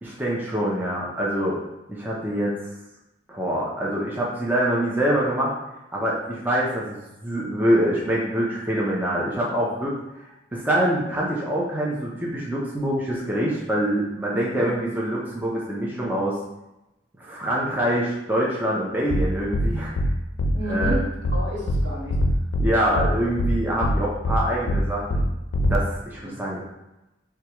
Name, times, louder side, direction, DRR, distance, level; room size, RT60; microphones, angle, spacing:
voice 1, 0.0-1.6 1.9-2.5 3.3-5.5 5.9-9.9 10.5-16.4 17.2-19.9 20.7-21.0 22.6-25.2 25.6-26.6, right 1 dB, 10° right, -5 dB, 0.5 m, -25 dB
sound 1, 19.1-19.2 19.5-19.7 20.0-20.1 20.4-20.5 20.8-20.9 21.2-21.4 21.7-21.8 22.1-22.7 23.0-23.1 23.4-23.5 23.8-23.9 24.2-24.4 24.7-24.8 25.1-25.2 25.5-25.8, equal, 80° left, 0.4 m, -22 dB
voice 2, 20.5-22.2 26.2-26.4, equal, 65° right, -3 dB, 0.9 m, -31 dB
4.5 x 2.3 x 2.9 m, 0.95 s
head